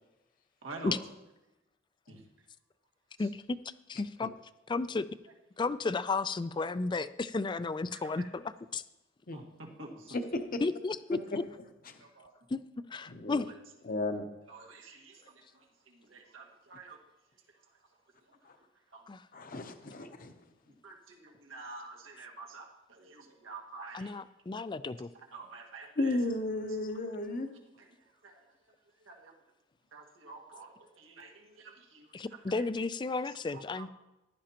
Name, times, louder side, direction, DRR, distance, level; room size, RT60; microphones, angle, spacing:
voice 1, 0.6-1.0 2.1-2.2 3.2-3.3 7.9-8.2 9.3-10.2 12.0-12.3 13.5-13.6 14.5-17.0 17.7-17.9 18.2-19.1 20.8-24.1 24.5-24.7 25.1-26.2 27.8-29.3 29.9-32.7 33.2-33.9, right 3 dB, 85° right, 1 dB, 1.8 m, -49 dB
voice 2, 3.9-4.3 4.7-5.1 5.6-8.4 8.7-8.8 10.6-11.4 12.5-12.6 12.9-13.5 19.1-19.2 23.9-25.1 32.1-33.9, left 3 dB, 25° left, 14 dB, 0.4 m, -33 dB
voice 3, 10.1-10.6 11.9-12.0 13.1-13.4 13.8-14.3 18.4-18.6 19.3-20.3 26.0-27.5, left 2 dB, 45° left, 6 dB, 0.8 m, -34 dB
15.0 x 11.5 x 2.9 m, 0.99 s
head